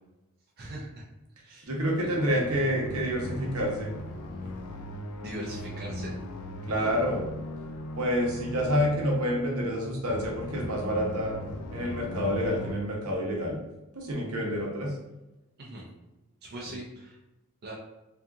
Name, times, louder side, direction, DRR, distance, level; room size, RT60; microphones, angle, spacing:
voice 1, 0.6-1.1 1.4-1.7 2.0-2.2 5.2-6.1 6.8-7.0 15.6-15.9 16.4-17.2 17.6-17.7, right 1 dB, 45° right, -3 dB, 0.4 m, -40 dB
voice 2, 1.7-3.9 6.7-7.2 8.0-11.3 11.7-13.6 13.9-15.0, equal, 85° right, -2 dB, 0.7 m, -28 dB
sound 1, 2.2-12.8, left 1 dB, 90° left, 0.4 m, -39 dB
2.7 x 2.4 x 2.3 m, 1.0 s
head